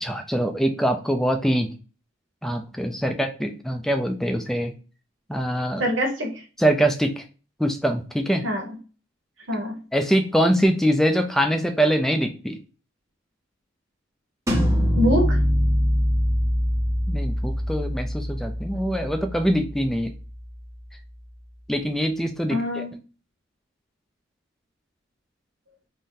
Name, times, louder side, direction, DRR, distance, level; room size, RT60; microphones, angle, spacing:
voice 1, 0.0-1.7 2.4-4.7 5.3-5.8 6.6-7.2 7.6-8.4 9.9-12.6 17.1-20.1 21.7-22.8, equal, ahead, 6 dB, 0.3 m, -23 dB
voice 2, 5.8-6.4 8.4-8.8 9.5-9.8 15.0-15.4 22.5-22.9, equal, 65° right, 1 dB, 1.0 m, -24 dB
sound 1, 14.5-20.1, equal, 15° right, 0.7 m, -23 dB
2.6 x 2.6 x 3.6 m, 0.35 s
head